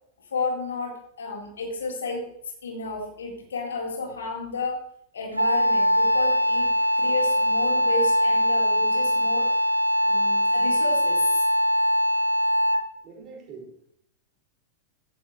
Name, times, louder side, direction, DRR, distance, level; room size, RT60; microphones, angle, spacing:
voice 1, 0.3-2.3 2.6-4.8 5.1-6.7 7.0-9.5 10.0-11.3, left 3 dB, 70° left, 0 dB, 4.2 m, -32 dB
Wind instrument woodwind instrument, 5.4-13.0, equal, 85° right, 0.6 m, -22 dB
voice 2, 13.0-14.0, right 4 dB, 35° right, -2 dB, 5.6 m, -44 dB
16.0 x 15.0 x 3.2 m, 0.71 s
figure-of-eight pair, 90°, 0 cm